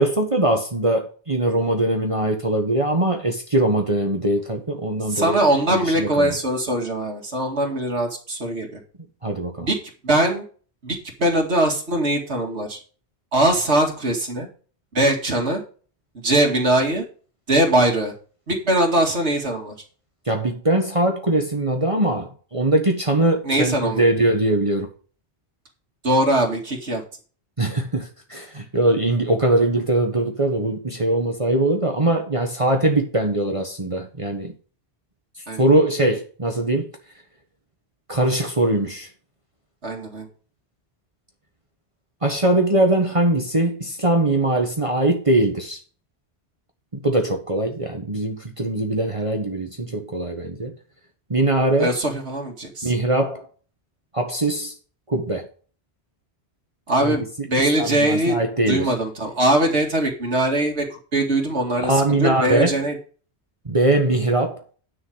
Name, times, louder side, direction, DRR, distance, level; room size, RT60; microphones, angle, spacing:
voice 1, 0.0-5.4 5.7-6.3 9.2-9.7 20.3-24.9 27.6-34.5 35.6-36.9 38.1-39.1 42.2-45.8 47.0-50.7 51.3-52.0 52.8-53.5 54.1-54.7 55.1-55.5 57.0-57.5 57.8-58.9 61.8-62.8 63.6-64.6, right 1 dB, 30° right, 1.5 m, -21 dB
voice 2, 5.1-8.8 9.6-9.8 10.0-10.4 10.8-12.8 13.3-14.5 14.9-15.6 16.2-17.0 17.5-18.1 18.5-19.7 23.5-24.0 26.0-27.0 35.5-35.6 39.8-40.3 51.8-52.9 56.9-58.4 58.7-60.8 61.1-62.9, right 1 dB, 75° right, 2.6 m, -21 dB
10.5 x 6.4 x 5.1 m
omnidirectional pair, 1.1 m